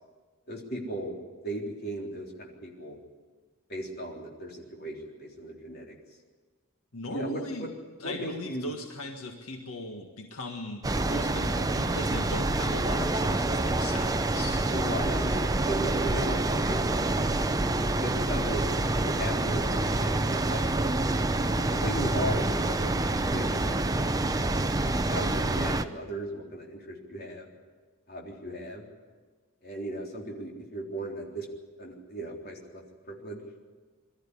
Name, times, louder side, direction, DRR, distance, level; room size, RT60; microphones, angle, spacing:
voice 1, 0.5-1.2 1.4-3.0 3.7-6.0 7.1-7.7 8.0-8.7 14.7-16.8 18.0-18.7 19.0-20.7 21.6-24.3 25.1-27.5 28.1-28.9 29.6-31.5 31.8-33.4, right 1 dB, 45° left, -1 dB, 3.7 m, -37 dB
voice 2, 6.9-7.7 8.0-14.7, left 2 dB, 85° left, 3 dB, 1.8 m, -38 dB
sound 1, 10.8-25.8, right 2 dB, 15° right, 0.7 m, -27 dB
22.5 x 13.5 x 10.0 m, 1.4 s
head